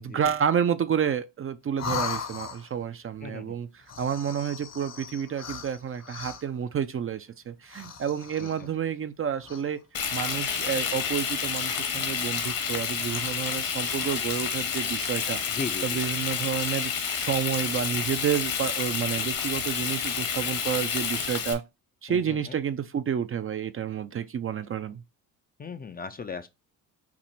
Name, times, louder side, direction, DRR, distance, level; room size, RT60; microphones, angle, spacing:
voice 1, 0.0-9.8 10.1-15.4 15.8-21.6 22.0-25.0, right 8 dB, 35° right, 0.5 m, -30 dB
sound 1, 1.8-2.9 3.8-6.6 7.6-8.8 9.4-9.8 10.1-11.3 11.6-11.9 12.3-13.4 13.8-14.2, left 6 dB, 45° left, 0.9 m, -39 dB
voice 2, 3.2-3.6 8.4-8.5 15.5-16.0 22.1-22.6 25.6-26.5, left 4 dB, 25° left, 0.5 m, -37 dB
Frying (food), 9.9-21.5, left 7 dB, 60° left, 1.3 m, -29 dB
5.9 x 2.0 x 4.4 m
supercardioid pair, 75°, 39 cm